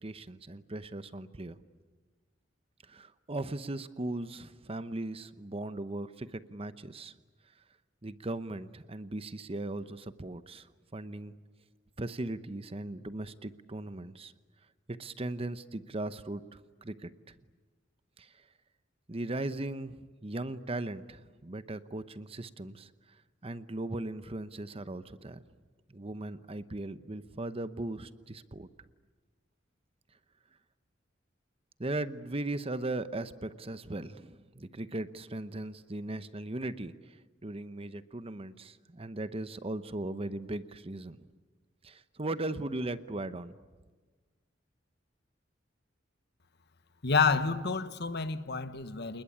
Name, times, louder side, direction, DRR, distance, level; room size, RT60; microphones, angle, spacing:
voice 1, 0.0-1.6 2.9-7.1 8.0-11.4 12.0-14.3 15.0-16.4 16.8-17.3 18.2-18.3 19.1-22.9 23.4-25.4 25.9-28.7 31.8-41.3 41.8-43.5, right 2 dB, 30° right, 0.9 m, -38 dB
voice 2, 47.0-49.2, left 5 dB, 60° left, 1.2 m, -29 dB
28.5 x 20.5 x 9.9 m
head